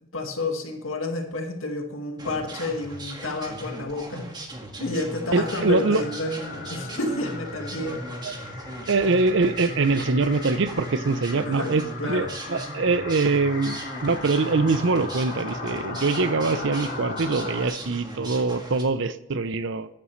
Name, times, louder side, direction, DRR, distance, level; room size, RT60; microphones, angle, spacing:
voice 1, 0.1-4.2 4.8-8.0 11.4-12.3, left 2 dB, 85° left, 3 dB, 1.9 m, -30 dB
sound 1, 2.2-18.8, right 1 dB, 20° right, 1.8 m, -38 dB
sound 2, 5.3-17.7, left 3 dB, 50° left, 2.0 m, -38 dB
voice 2, 5.3-6.0 8.2-8.3 8.9-19.9, right 3 dB, 65° right, 14 dB, 0.7 m, -23 dB
13.0 x 9.8 x 3.2 m, 0.88 s
head